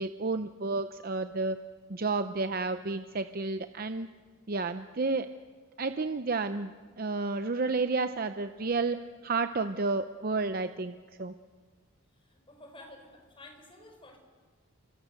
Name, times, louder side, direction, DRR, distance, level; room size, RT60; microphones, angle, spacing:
voice 1, 0.0-1.6 1.9-4.1 4.5-5.3 5.8-6.7 7.0-11.3, right 3 dB, 45° right, 9 dB, 0.7 m, -31 dB
voice 2, 12.2-14.2, left 1 dB, 25° left, 4 dB, 4.4 m, -51 dB
29.5 x 24.0 x 6.7 m, 1.6 s
head